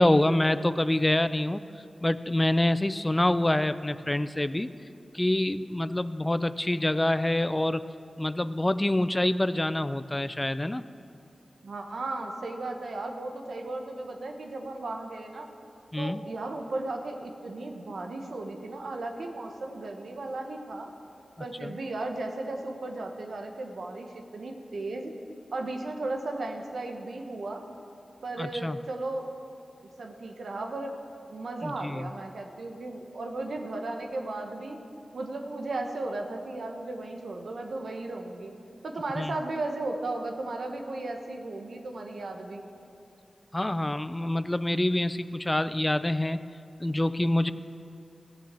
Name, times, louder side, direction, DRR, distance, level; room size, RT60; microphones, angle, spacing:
voice 1, 0.0-1.6 2.0-4.7 5.1-7.9 8.2-10.8 15.9-16.2 21.6-21.8 28.4-28.8 31.6-32.1 39.2-39.3 43.5-46.4 46.8-47.5, left 1 dB, 25° left, 14 dB, 0.4 m, -26 dB
voice 2, 11.6-15.5 16.0-20.9 21.4-25.1 25.5-27.6 28.2-29.3 30.0-30.9 31.3-34.8 35.1-38.5 38.8-42.6, right 2 dB, 80° right, 3 dB, 1.2 m, -35 dB
15.0 x 7.0 x 7.6 m, 2.6 s
cardioid pair, 45°, 0 cm